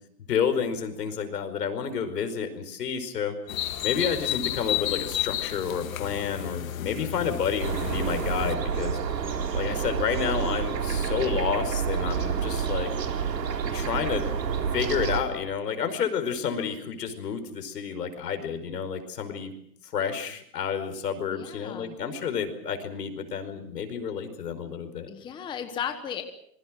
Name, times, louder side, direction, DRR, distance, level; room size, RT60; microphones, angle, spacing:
voice 1, 0.3-3.4 3.8-9.0 9.5-12.9 13.7-14.3 14.7-19.5 19.8-25.1, left 7 dB, 75° left, 9 dB, 5.2 m, -30 dB
sound 1, 3.5-8.5, left 12 dB, 55° left, 2.2 m, -32 dB
sound 2, 7.6-15.2, right 6 dB, 85° right, 3.9 m, -28 dB
voice 2, 21.3-21.9 25.1-26.2, left 8 dB, 10° left, 7 dB, 1.1 m, -35 dB
27.0 x 22.0 x 6.3 m, 0.70 s
hypercardioid pair, 150°, 48 cm